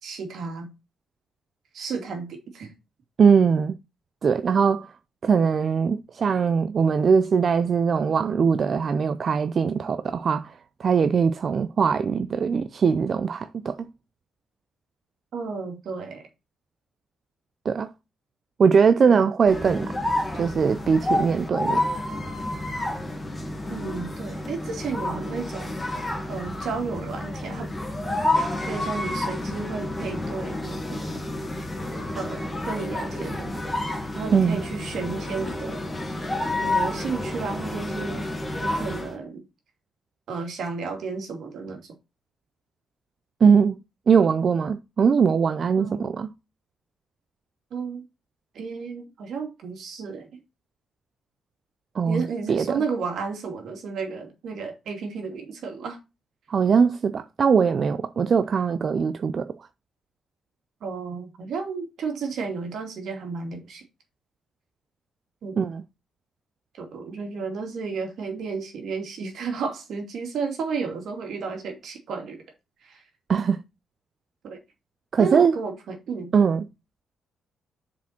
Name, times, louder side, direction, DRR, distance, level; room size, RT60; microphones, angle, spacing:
voice 1, 0.0-0.7 1.7-2.7 15.3-16.2 19.0-19.2 23.7-25.8 26.3-27.7 28.7-31.1 32.2-33.6 34.1-35.8 36.6-38.3 38.6-39.4 40.3-41.9 45.8-46.1 47.7-48.0 48.5-50.4 52.0-56.0 60.8-63.8 65.4-65.6 66.8-72.4 72.8-73.0 74.4-74.6 75.2-76.3, right 5 dB, 65° right, 2.6 m, -32 dB
voice 2, 3.2-3.8 4.2-4.9 5.2-10.5 10.8-13.9 17.7-17.9 18.6-19.9 20.3-21.8 34.3-34.6 43.4-43.8 44.1-46.3 52.0-52.2 52.5-52.8 56.5-59.5 65.6-65.8 73.3-73.6 75.1-75.5 76.3-76.6, right 6 dB, 45° right, 0.5 m, -21 dB
sound 1, 19.5-39.1, left 1 dB, 15° left, 2.1 m, -29 dB
7.1 x 5.0 x 4.3 m
cardioid pair, 115°, 0 cm